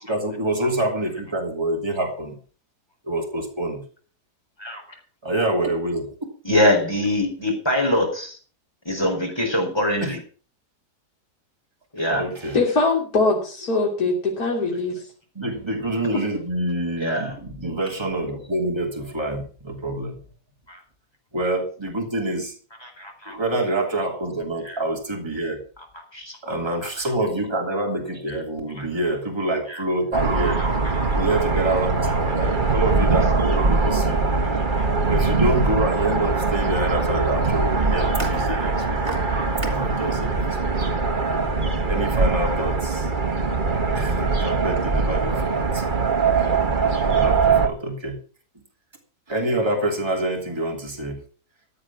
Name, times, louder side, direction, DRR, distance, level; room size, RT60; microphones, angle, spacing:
voice 1, 0.1-2.4 3.1-3.8 5.2-6.0 10.0-10.1 12.1-12.6 15.3-20.2 21.3-22.5 23.3-25.6 26.4-30.8 31.1-34.2 35.1-39.3 39.6-40.5 41.9-43.1 43.9-48.2 49.3-51.2, right 1 dB, 15° right, 1 dB, 3.2 m, -26 dB
voice 2, 6.4-8.4 8.8-10.2 11.9-12.2 17.0-17.3 20.7-20.8 22.8-23.4 24.6-24.8 26.1-26.5 26.8-26.9 28.3-28.4 28.8-28.9 29.7-29.8 30.6-30.7 30.9-31.2 32.4-32.5 34.5-34.9, left 1 dB, 15° left, 2 dB, 4.2 m, -24 dB
voice 3, 12.5-14.9 16.1-16.2, left 3 dB, 65° left, -2 dB, 3.6 m, -22 dB
sound 1, 30.1-47.7, right 4 dB, 30° right, 1.6 m, -22 dB
15.0 x 8.8 x 6.0 m, 0.41 s
omnidirectional pair, 1.7 m